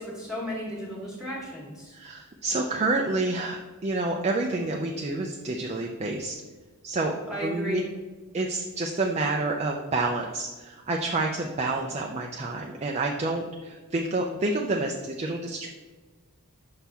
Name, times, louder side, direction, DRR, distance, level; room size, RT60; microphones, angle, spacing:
voice 1, 0.0-2.0 7.3-7.9, equal, ahead, -6 dB, 1.4 m, -34 dB
voice 2, 1.9-6.4 6.8-7.2 7.4-7.8 8.3-15.7, right 2 dB, 30° right, 1 dB, 0.4 m, -28 dB
5.9 x 5.6 x 3.5 m, 1.3 s
head